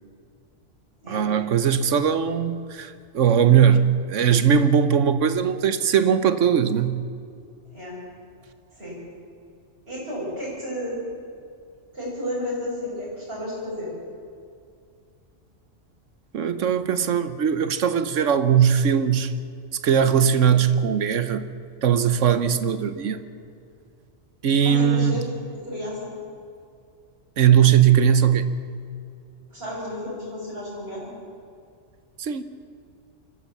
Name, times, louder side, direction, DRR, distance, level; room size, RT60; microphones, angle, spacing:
voice 1, 1.1-7.0 16.3-19.3 19.7-21.5 21.8-23.2 24.4-25.3 27.4-28.5 32.2-32.4, right 8 dB, 75° right, 12 dB, 1.3 m, -20 dB
voice 2, 9.8-11.0 11.9-13.9 24.6-25.4 25.6-26.1 29.5-31.1, left 1 dB, 50° right, -6 dB, 7.6 m, -32 dB
24.5 x 15.0 x 7.3 m, 2.4 s
omnidirectional pair, 1.3 m